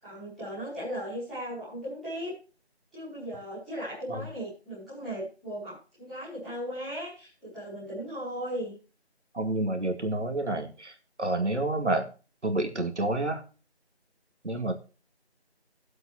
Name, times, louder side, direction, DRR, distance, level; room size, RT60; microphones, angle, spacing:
voice 1, 0.0-2.3 2.9-8.8, equal, ahead, -14 dB, 1.6 m, -37 dB
voice 2, 9.3-12.1 12.4-13.4 14.4-14.8, right 2 dB, 90° right, 5 dB, 2.3 m, -29 dB
15.5 x 7.9 x 2.8 m, 0.34 s
figure-of-eight pair, 180°, 33 cm